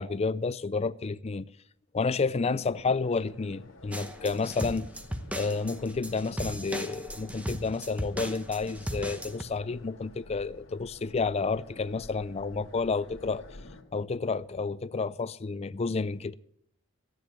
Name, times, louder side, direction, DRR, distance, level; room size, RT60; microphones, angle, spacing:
voice 1, 0.0-1.5 1.9-4.9 5.3-13.4 13.9-16.3, left 4 dB, 30° left, 0.4 m, -30 dB
sound 1, 2.5-13.8, left 1 dB, 80° left, 2.0 m, -51 dB
sound 2, 3.9-9.4, equal, 5° right, 0.9 m, -37 dB
13.5 x 10.5 x 6.2 m
head